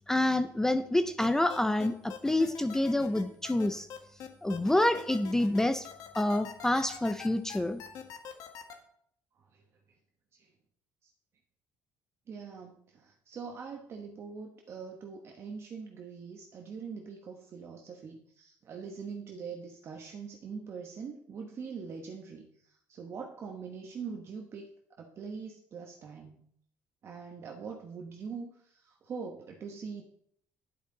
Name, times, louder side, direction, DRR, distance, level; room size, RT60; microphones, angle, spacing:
voice 1, 0.1-3.9 4.4-5.9 6.2-7.8, left 1 dB, 5° left, 10 dB, 0.4 m, -27 dB
sound 1, 1.2-8.7, left 8 dB, 65° left, 1.4 m, -44 dB
voice 2, 12.3-24.7 25.0-26.4 27.0-30.0, right 5 dB, 40° right, 2 dB, 1.0 m, -43 dB
9.9 x 8.4 x 3.8 m, 0.68 s
cardioid pair, 140°, 7 cm